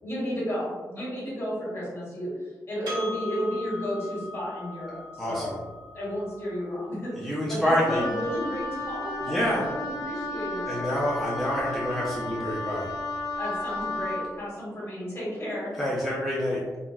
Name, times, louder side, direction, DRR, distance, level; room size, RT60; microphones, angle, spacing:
voice 1, 0.0-5.5 5.9-10.9 13.4-15.7, equal, 40° left, -7 dB, 1.4 m, -32 dB
Percussion, 2.9-7.7, left 2 dB, 80° right, 1.1 m, -40 dB
voice 2, 7.2-8.0 9.3-9.6 10.7-12.9 15.8-16.6, equal, ahead, -8 dB, 0.4 m, -27 dB
Wind instrument woodwind instrument, 7.9-14.3, left 2 dB, 80° left, 0.5 m, -33 dB
3.9 x 2.1 x 2.3 m, 1.3 s
wide cardioid pair, 170°, 7 cm